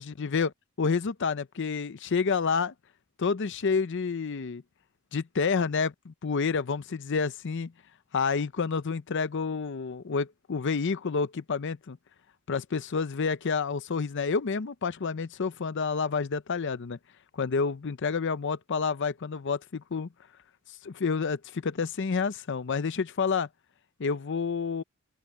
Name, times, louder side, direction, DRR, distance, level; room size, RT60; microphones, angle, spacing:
voice 1, 0.0-2.7 3.2-4.6 5.1-7.7 8.1-12.0 12.5-17.0 17.3-20.1 20.8-23.5 24.0-24.8, left 5 dB, 60° left, 0.6 m, -29 dB
open air
head